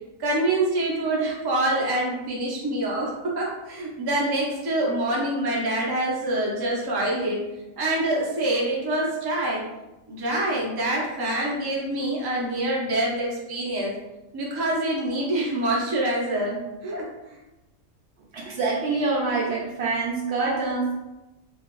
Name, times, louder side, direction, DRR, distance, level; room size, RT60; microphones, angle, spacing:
voice 1, 0.2-7.4 7.8-9.6 10.1-13.9 14.3-17.4, right 1 dB, 25° right, -4 dB, 0.5 m, -26 dB
voice 2, 18.3-20.9, right 3 dB, 60° right, -3 dB, 0.8 m, -25 dB
3.0 x 3.0 x 3.0 m, 1.0 s
omnidirectional pair, 1.4 m